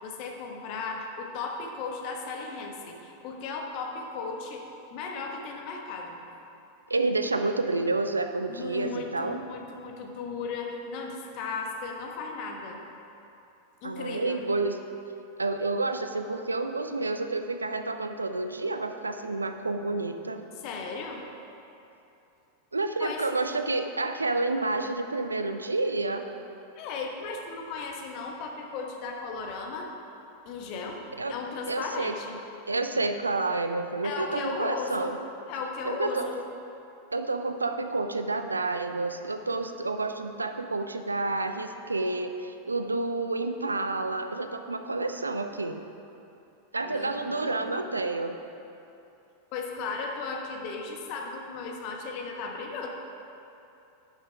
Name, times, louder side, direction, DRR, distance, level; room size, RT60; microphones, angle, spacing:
voice 1, 0.0-4.6 4.9-6.2 8.5-12.8 13.8-14.4 20.6-21.3 23.0-23.2 26.8-29.9 30.4-31.0 31.3-32.4 34.0-35.2 35.5-36.4 46.8-47.8 49.5-52.9, left 4 dB, 45° left, 2 dB, 1.2 m, -36 dB
voice 2, 6.9-9.4 13.8-14.8 15.4-20.4 22.7-26.3 31.2-31.3 31.7-32.1 32.7-35.2 35.8-36.3 37.1-45.8 46.7-48.4, right 2 dB, 80° right, 7 dB, 0.5 m, -29 dB
11.0 x 6.5 x 4.6 m, 2.8 s
figure-of-eight pair, 90°, 0 cm